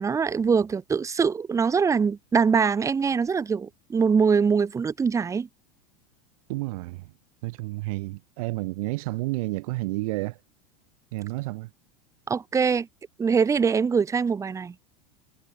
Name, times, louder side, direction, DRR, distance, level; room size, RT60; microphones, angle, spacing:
voice 1, 0.0-5.5 12.3-12.9 13.2-14.7, right 5 dB, 15° right, 0.7 m, -23 dB
voice 2, 6.5-7.1 7.4-10.4 11.1-11.7, right 21 dB, 65° right, 1.3 m, -30 dB
hypercardioid pair, 95°, 20 cm